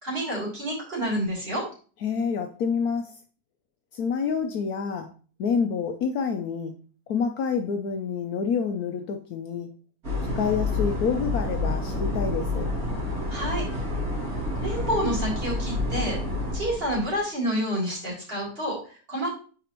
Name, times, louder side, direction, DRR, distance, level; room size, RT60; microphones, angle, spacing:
voice 1, 0.0-1.6 13.3-13.6 14.6-16.2 16.5-19.3, equal, 35° right, -4 dB, 3.2 m, -28 dB
voice 2, 2.0-3.1 3.9-5.1 5.4-6.7 7.1-9.7 10.3-12.7, left 6 dB, 65° left, 5 dB, 1.1 m, -27 dB
sound 1, 10.0-17.2, left 2 dB, 55° right, 3.1 m, -29 dB
8.3 x 5.0 x 3.0 m, 0.39 s
omnidirectional pair, 1.8 m